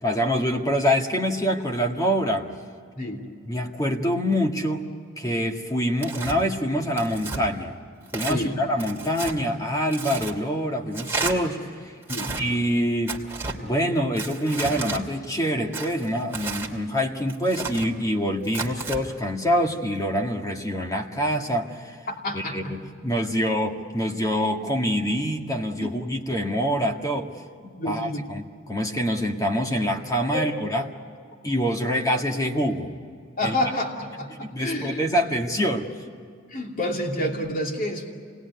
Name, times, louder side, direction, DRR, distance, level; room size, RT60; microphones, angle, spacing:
voice 1, 0.0-2.5 3.5-4.9 5.2-7.8 8.1-11.9 12.4-13.2 13.6-22.0 22.3-27.3 27.9-30.8 31.4-32.9 33.4-33.6 34.4-35.9, equal, 20° left, 2 dB, 1.9 m, -25 dB
Tearing, 6.0-6.4 7.0-7.4 8.1-8.4 8.8-9.4 9.9-10.3 10.9-11.3 12.0-12.4 13.1-13.6 14.2-15.0 15.7-16.7 17.3-17.9 18.4-19.0, right 4 dB, 10° right, 2.5 m, -32 dB
voice 2, 22.1-22.7 25.8-26.0 27.6-28.2 30.3-30.5 33.4-35.0 36.5-38.1, left 1 dB, 45° left, 1 dB, 2.7 m, -29 dB
27.5 x 20.0 x 9.5 m, 2.2 s
head